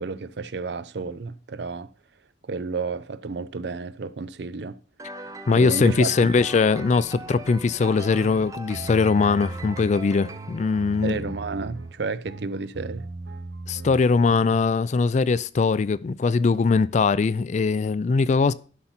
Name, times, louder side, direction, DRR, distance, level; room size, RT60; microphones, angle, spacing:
voice 1, 0.0-1.9 2.4-4.8 5.2-5.3 5.5-6.3 11.0-13.1, right 4 dB, 65° right, 0.5 m, -31 dB
sound 1, 5.0-11.6, right 2 dB, 20° right, 0.6 m, -41 dB
voice 2, 5.5-11.2 13.7-18.5, left 4 dB, 40° left, 0.3 m, -21 dB
sound 2, 6.8-14.7, right 2 dB, 85° right, 0.9 m, -39 dB
11.5 x 5.7 x 4.3 m
head